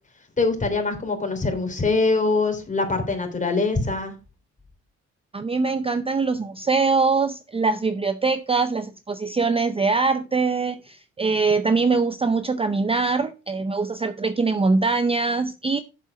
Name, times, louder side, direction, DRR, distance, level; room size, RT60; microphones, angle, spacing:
voice 1, 0.4-4.1, left 3 dB, 25° left, 3.1 m, -23 dB
voice 2, 5.3-15.8, right 4 dB, 20° right, 0.6 m, -23 dB
7.6 x 7.4 x 4.9 m
cardioid pair, 90°, 30 cm